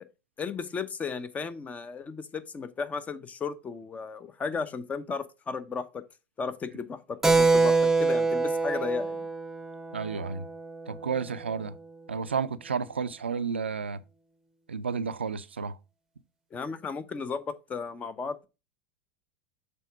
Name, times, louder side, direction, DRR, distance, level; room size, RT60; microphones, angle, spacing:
voice 1, 0.4-6.0 6.4-9.3 16.5-18.5, left 5 dB, 25° left, 0.7 m, -35 dB
Keyboard (musical), 7.2-11.3, right 3 dB, 5° right, 0.8 m, -25 dB
voice 2, 9.9-10.5 10.9-11.7 12.1-14.0 14.7-15.8, right 5 dB, 90° right, 0.4 m, -31 dB
6.8 x 3.6 x 4.7 m
hypercardioid pair, 90°, 6 cm